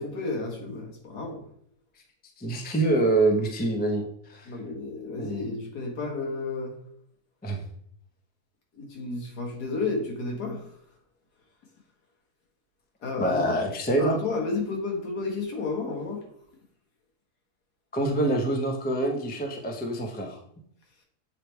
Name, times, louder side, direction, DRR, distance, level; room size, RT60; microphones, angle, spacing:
voice 1, 0.0-1.4 4.5-6.7 8.8-10.6 13.0-13.5 13.9-16.2, left 3 dB, 75° left, 0 dB, 2.0 m, -32 dB
voice 2, 2.4-4.0 4.3-4.5 5.2-5.5 7.4-7.6 13.2-14.2 17.9-20.4, right 2 dB, 10° left, 2 dB, 0.5 m, -25 dB
7.5 x 3.3 x 4.5 m, 0.68 s
omnidirectional pair, 1.7 m